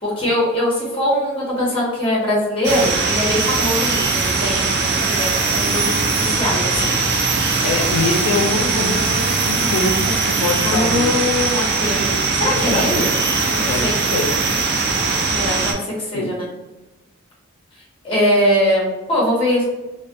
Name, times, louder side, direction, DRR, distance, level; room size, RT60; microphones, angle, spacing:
voice 1, 0.0-7.0 7.7-8.0 10.6-13.1 13.5-14.0 15.3-15.7 16.1-16.5 18.0-19.6, left 1 dB, 25° left, -6 dB, 1.0 m, -21 dB
sound 1, 2.6-15.7, right 4 dB, 50° right, 0.4 m, -20 dB
voice 2, 7.6-11.1 12.1-12.2 12.7-13.0 13.6-14.3 16.1-16.3, left 3 dB, 80° left, 0 dB, 0.4 m, -24 dB
2.4 x 2.2 x 2.6 m, 1.1 s
head